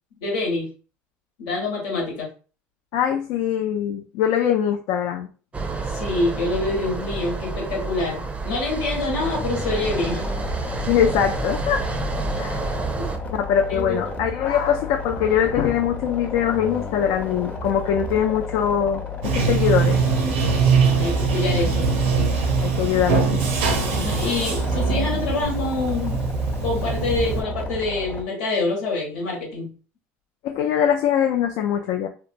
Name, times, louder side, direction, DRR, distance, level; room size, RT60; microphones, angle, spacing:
voice 1, 0.2-0.7 1.4-2.3 5.9-10.3 13.7-14.0 20.8-21.9 23.9-26.2 26.6-29.7, left 2 dB, 85° left, -1 dB, 1.1 m, -26 dB
voice 2, 2.9-5.3 10.8-11.8 12.4-12.7 13.3-20.0 22.6-23.4 24.2-24.4 30.4-32.1, left 9 dB, 70° left, 3 dB, 0.3 m, -22 dB
sound 1, 5.5-13.2, right 3 dB, 20° right, 0.4 m, -29 dB
sound 2, 9.1-28.2, left 3 dB, 20° left, 0.6 m, -32 dB
Bathtub (filling or washing), 19.2-27.4, right 5 dB, 90° right, 0.6 m, -22 dB
2.9 x 2.1 x 2.5 m, 0.37 s
supercardioid pair, 90°, 7 cm